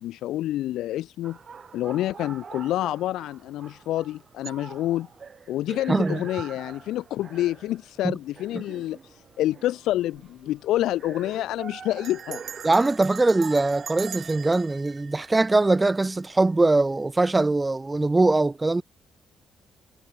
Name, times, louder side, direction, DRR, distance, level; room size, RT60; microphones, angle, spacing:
voice 1, 0.0-1.4 1.7-5.1 5.5-12.4, left 14 dB, 85° left, 0.8 m, -28 dB
sound 1, 1.2-14.5, right 6 dB, 45° right, 3.0 m, -44 dB
voice 2, 5.9-6.2 8.0-8.2 8.5-8.6 12.6-18.8, right 2 dB, 20° right, 0.5 m, -22 dB
Bell, 9.9-10.3 10.6-10.7 10.9-11.3 12.0-16.1, right 8 dB, 60° right, 6.0 m, -42 dB
cardioid pair, 90°, 0 cm